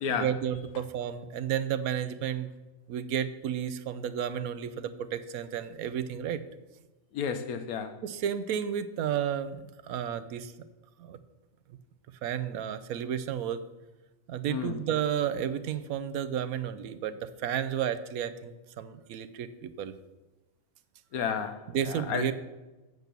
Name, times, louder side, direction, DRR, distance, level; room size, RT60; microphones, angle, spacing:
voice 1, 0.1-2.5 2.9-6.4 8.0-10.5 11.0-11.2 12.2-13.6 14.3-19.9 21.7-22.3, right 9 dB, 85° right, 1.1 m, -32 dB
voice 2, 7.1-8.0 14.5-14.8 21.1-22.3, left 7 dB, 90° left, 1.3 m, -32 dB
8.2 x 6.0 x 6.7 m
omnidirectional pair, 1.5 m